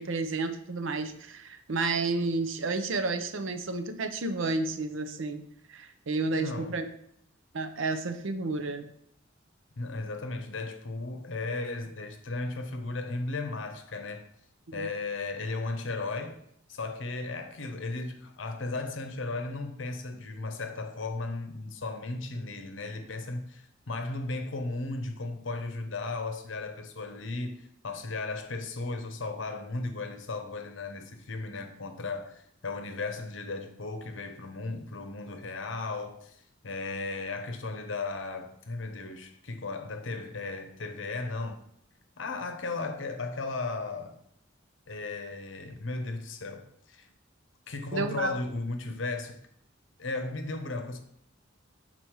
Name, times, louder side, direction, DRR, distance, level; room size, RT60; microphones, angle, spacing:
voice 1, 0.0-5.4 5.7-6.8 7.5-8.9 14.7-14.9 47.9-48.4, right 3 dB, 75° right, 0.6 m, -31 dB
voice 2, 6.3-6.8 9.8-14.3 14.7-16.4 16.7-41.6 42.2-44.2 44.9-47.1 47.7-49.4 50.0-51.0, left 3 dB, 70° left, 0.8 m, -35 dB
6.2 x 4.1 x 4.6 m
head